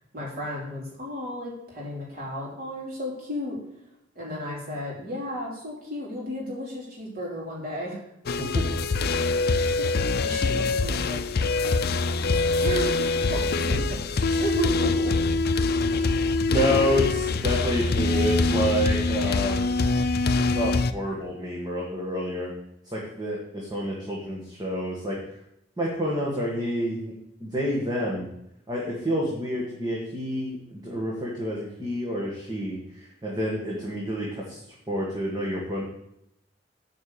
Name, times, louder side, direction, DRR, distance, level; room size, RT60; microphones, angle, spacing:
voice 1, 0.1-3.6 4.1-8.0 9.4-15.1, equal, 50° right, -5 dB, 4.0 m, -34 dB
sound 1, 8.3-20.9, left 3 dB, 55° left, 0.5 m, -24 dB
voice 2, 16.5-19.7 20.5-22.5 22.9-25.2 25.8-27.1 27.4-28.3 28.7-34.6 34.9-35.8, equal, 20° right, -4 dB, 1.9 m, -28 dB
9.0 x 5.4 x 7.0 m, 0.79 s
head